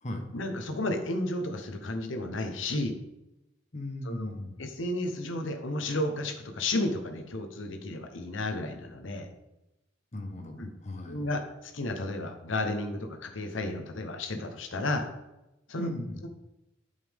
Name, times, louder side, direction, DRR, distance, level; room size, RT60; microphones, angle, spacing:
voice 1, 0.3-3.0 4.0-4.3 4.6-9.3 10.6-10.7 11.1-15.1 15.7-15.9, left 2 dB, 90° left, 5 dB, 1.0 m, -32 dB
voice 2, 3.7-4.6 10.1-11.3 15.8-16.2, left 1 dB, 40° left, 4 dB, 1.1 m, -37 dB
8.0 x 5.6 x 3.6 m, 0.95 s
head